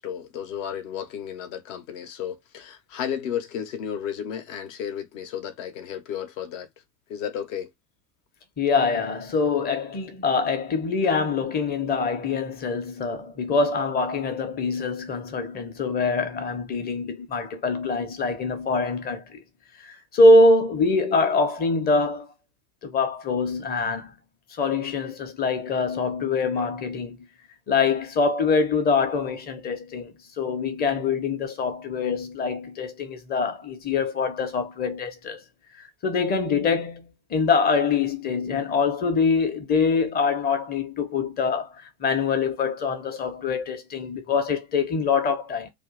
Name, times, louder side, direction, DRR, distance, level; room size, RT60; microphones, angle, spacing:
voice 1, 0.0-6.7 7.1-7.7, left 9 dB, 50° left, 0.9 m, -33 dB
voice 2, 8.6-19.4 19.8-22.3 22.8-24.1 24.6-27.3 27.7-35.4 36.0-41.7 42.0-45.7, left 3 dB, 20° left, 0.8 m, -24 dB
2.5 x 2.5 x 3.7 m
figure-of-eight pair, 90°, 49 cm